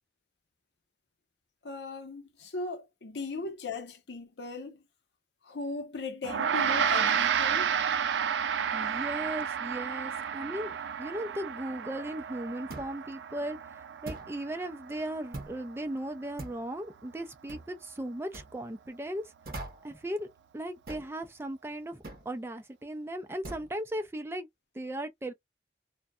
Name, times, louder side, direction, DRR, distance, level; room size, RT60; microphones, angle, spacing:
voice 1, 1.6-4.8 5.4-7.8, left 3 dB, 80° left, 0.6 m, -38 dB
Gong, 6.2-15.9, right 7 dB, 90° right, 0.3 m, -31 dB
voice 2, 8.7-19.3 19.8-20.3 20.5-24.5 24.7-25.3, right 1 dB, 15° right, 0.3 m, -37 dB
sound 1, 12.7-13.0 14.1-14.4 15.3-15.6 16.4-16.7 17.5-17.7 18.3-18.5 19.4-19.9 20.9-21.1 22.0-22.3 23.4-23.7, right 2 dB, 55° right, 0.8 m, -42 dB
2.6 x 2.1 x 2.2 m
head